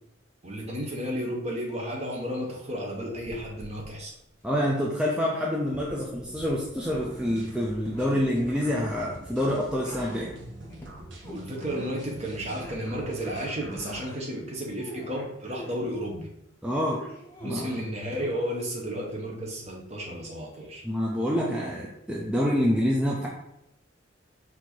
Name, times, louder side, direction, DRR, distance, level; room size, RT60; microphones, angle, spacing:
voice 1, 0.4-4.1 11.3-16.3 17.4-20.8, equal, 35° right, -2 dB, 1.0 m, -33 dB
sound 1, 2.9-4.4 5.6-7.1 7.3-12.3 12.6-14.2 14.6-15.8 16.9-18.6 19.1-19.2, left 1 dB, 10° left, 0.9 m, -46 dB
voice 2, 4.4-10.3 16.6-17.0 17.4-17.7 20.8-23.3, equal, 5° right, -4 dB, 0.4 m, -27 dB
sound 2, 6.8-14.1, right 1 dB, 65° right, 0.9 m, -44 dB
4.4 x 2.7 x 4.4 m, 0.83 s
head